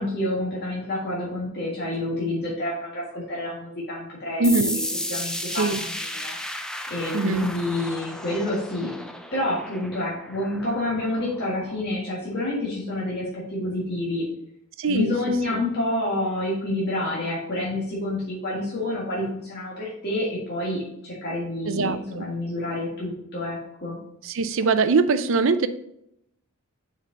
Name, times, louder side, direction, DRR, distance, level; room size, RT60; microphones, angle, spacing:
voice 1, 0.0-4.8 5.1-6.4 6.9-8.9 9.3-14.2 14.9-24.0, left 1 dB, 45° left, -6 dB, 1.7 m, -28 dB
sound 1, 4.4-11.8, left 1 dB, 5° left, 0.4 m, -34 dB
voice 2, 4.4-4.8 5.6-5.8 7.1-7.5 14.8-15.1 15.5-15.6 21.7-22.3 24.2-25.7, right 3 dB, 60° right, 12 dB, 0.5 m, -22 dB
6.7 x 4.7 x 3.8 m, 0.77 s
head